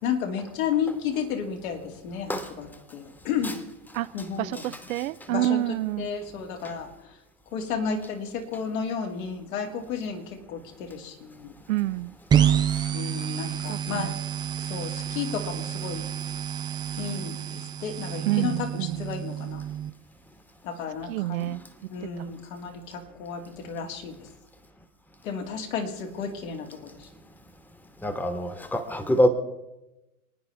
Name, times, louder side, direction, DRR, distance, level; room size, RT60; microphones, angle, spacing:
voice 1, 0.0-3.6 4.1-4.7 5.3-5.6 6.0-7.2 7.5-11.5 12.9-14.2 14.6-16.1 17.0-19.7 20.6-21.5 21.9-24.3 25.2-27.1, left 6 dB, 65° left, 2.5 m, -32 dB
voice 2, 4.4-6.1 11.7-12.1 13.7-14.1 18.2-19.0 21.1-21.6 22.2-22.3, right 15 dB, 65° right, 0.6 m, -28 dB
sound 1, 12.3-19.9, right 9 dB, 10° right, 0.3 m, -28 dB
voice 3, 28.0-29.3, equal, 5° left, 1.3 m, -24 dB
28.0 x 9.5 x 3.5 m
hypercardioid pair, 110°, 44 cm